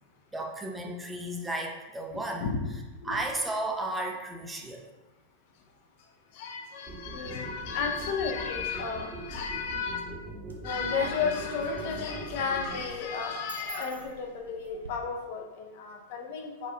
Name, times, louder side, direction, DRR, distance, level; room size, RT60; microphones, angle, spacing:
voice 1, 0.3-2.5 3.1-4.9, right 1 dB, 10° right, 0 dB, 0.4 m, -33 dB
voice 2, 2.1-2.7 3.0-3.2 5.5-5.6 6.0-10.0 10.6-16.7, left 5 dB, 50° left, 2 dB, 0.4 m, -33 dB
sound 1, 6.9-12.8, right 2 dB, 25° right, 0.8 m, -41 dB
sound 2, 9.1-9.8 10.3-14.9, right 2 dB, 75° right, 0.3 m, -43 dB
4.2 x 2.3 x 2.3 m, 1.2 s
figure-of-eight pair, 90°, 0 cm